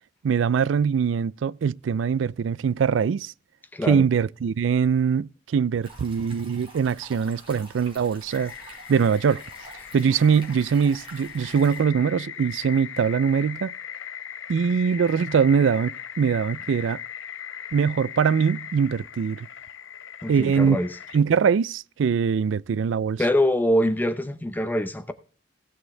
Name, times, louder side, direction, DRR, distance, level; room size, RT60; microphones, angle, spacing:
voice 1, 0.2-3.3 3.9-8.5 8.9-9.4 9.9-13.7 14.5-17.0 17.7-19.5 20.3-20.8 21.1-23.2, right 6 dB, 70° right, 0.4 m, -22 dB
voice 2, 3.7-4.0 20.2-20.9 23.2-25.1, left 1 dB, 10° left, 0.8 m, -24 dB
sound 1, 5.8-11.8, right 2 dB, 30° right, 4.8 m, -47 dB
sound 2, 8.3-21.2, left 9 dB, 80° left, 0.8 m, -39 dB
17.5 x 6.4 x 3.3 m
head